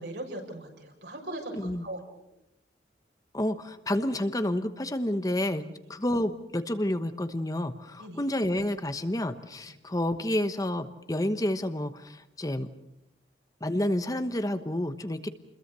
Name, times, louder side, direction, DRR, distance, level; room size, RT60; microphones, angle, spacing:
voice 1, 0.0-2.0 8.0-8.2, right 1 dB, 75° right, 2 dB, 6.6 m, -39 dB
voice 2, 1.5-1.8 3.3-5.6 5.9-12.7 13.6-15.3, left 1 dB, 20° left, 10 dB, 1.0 m, -29 dB
29.0 x 22.0 x 6.9 m, 0.86 s
head